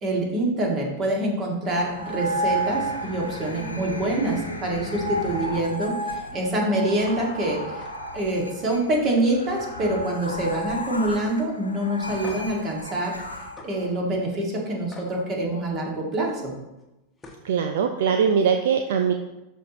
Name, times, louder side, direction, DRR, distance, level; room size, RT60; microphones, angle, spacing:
voice 1, 0.0-7.8 8.1-13.1 13.6-16.5, right 1 dB, 30° right, -1 dB, 2.0 m, -26 dB
sound 1, 1.6-13.9, right 1 dB, 85° left, 1.1 m, -32 dB
sound 2, 7.0-7.2 7.6-7.9 8.3-8.5 8.9-10.1 10.4-10.8 11.2-11.3 12.2-12.6 13.6-13.7 14.9-15.1 16.8-16.9 17.2-17.5, left 2 dB, 15° left, 1.3 m, -44 dB
voice 2, 17.4-19.1, right 7 dB, 55° right, 5 dB, 0.5 m, -21 dB
12.0 x 4.3 x 3.0 m, 0.98 s
figure-of-eight pair, 90°, 0 cm